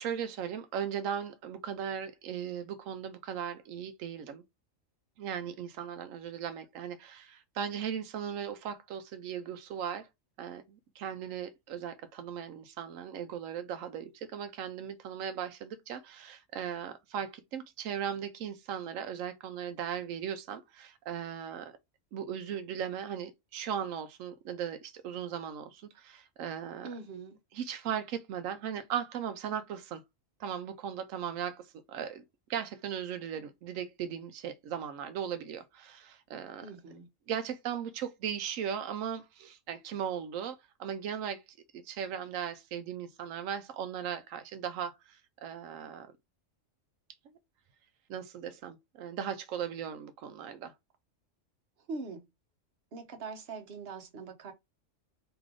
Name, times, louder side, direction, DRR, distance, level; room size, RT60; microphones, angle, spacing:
voice 1, 0.0-4.4 5.2-10.1 10.4-21.8 22.1-26.9 27.5-30.0 30.4-32.2 32.5-36.7 37.3-41.4 41.7-46.1 48.1-50.7, right 8 dB, 85° right, 1.0 m, -38 dB
voice 2, 26.8-27.4 36.6-37.1 51.9-52.2 52.9-54.5, right 4 dB, 55° right, 1.1 m, -42 dB
3.2 x 3.0 x 3.6 m
omnidirectional pair, 1.3 m